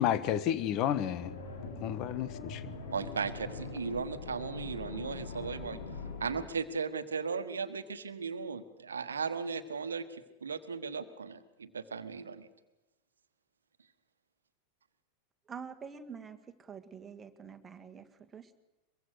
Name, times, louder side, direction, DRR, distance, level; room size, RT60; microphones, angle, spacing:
voice 1, 0.0-1.3 1.8-2.6, left 10 dB, 40° left, 15 dB, 1.4 m, -31 dB
sound 1, 1.2-6.5, left 4 dB, 60° left, 4.4 m, -42 dB
voice 2, 2.9-5.8 6.2-12.5, right 5 dB, 70° right, 12 dB, 1.5 m, -37 dB
voice 3, 15.5-18.6, right 6 dB, 20° right, 8 dB, 1.9 m, -47 dB
23.5 x 23.0 x 6.5 m, 1.0 s
figure-of-eight pair, 90°, 0 cm